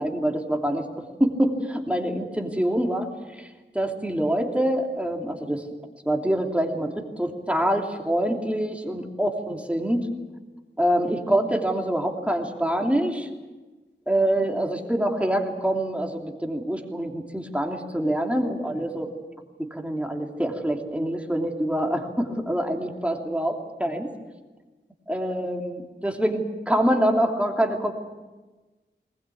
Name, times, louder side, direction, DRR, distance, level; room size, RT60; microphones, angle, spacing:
voice 1, 0.0-3.1 3.4-3.5 3.7-5.7 6.0-10.1 10.8-13.3 14.1-19.1 19.6-24.1 25.1-27.9, right 1 dB, 5° right, 2 dB, 3.0 m, -25 dB
20.5 x 20.0 x 8.6 m, 1.2 s
wide cardioid pair, 65°, 19 cm